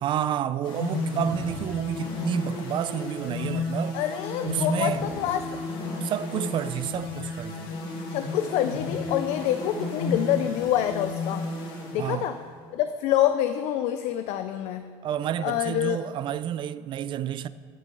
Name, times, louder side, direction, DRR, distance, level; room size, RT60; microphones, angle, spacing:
voice 1, 0.0-4.0 4.4-5.1 6.0-7.7 12.0-12.3 15.0-17.5, right 10 dB, 45° right, 0.4 m, -30 dB
sound 1, 0.6-12.5, left 2 dB, 85° left, 2.8 m, -32 dB
voice 2, 3.9-5.6 8.1-11.5 11.9-12.4 12.7-14.9 15.4-16.0, left 11 dB, 70° left, 0.5 m, -26 dB
10.5 x 6.0 x 7.7 m
cardioid pair, 130°, 12 cm